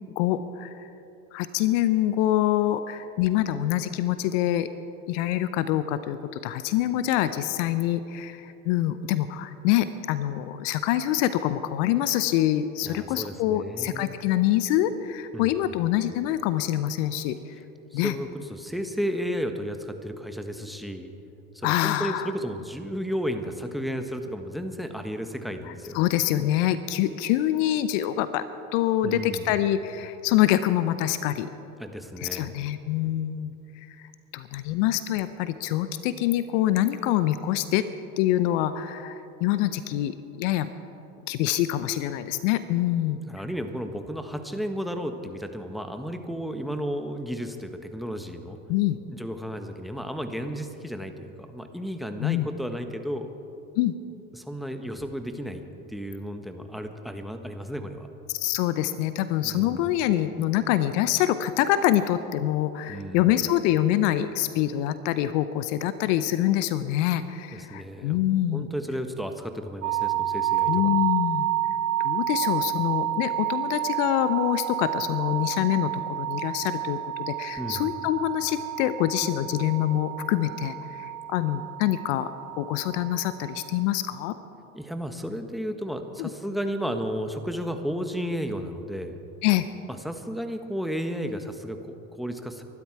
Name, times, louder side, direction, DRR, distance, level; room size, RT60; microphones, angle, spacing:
voice 1, 0.2-0.9 1.3-4.7 5.1-17.4 17.9-18.1 21.6-22.3 25.7-28.4 28.7-31.5 32.2-33.5 34.0-37.9 38.2-40.7 41.3-43.2 48.7-49.0 52.2-52.5 53.8-53.9 58.3-68.7 70.7-71.5 72.0-82.3 82.6-84.4 86.2-86.3 89.4-89.7, left 13 dB, 60° left, 13 dB, 0.8 m, -25 dB
voice 2, 12.8-14.2 15.3-15.5 17.9-21.1 21.5-26.0 29.0-29.5 31.8-32.5 43.2-48.6 49.1-53.3 54.3-55.6 55.9-58.1 59.4-59.9 62.9-63.3 67.5-68.2 68.5-71.0 77.6-77.9 84.7-89.2 89.9-92.6, equal, ahead, 7 dB, 1.4 m, -33 dB
sound 1, 69.8-83.8, right 12 dB, 40° right, 0.6 m, -30 dB
23.5 x 12.0 x 4.7 m, 2.9 s
hypercardioid pair, 80°, 42 cm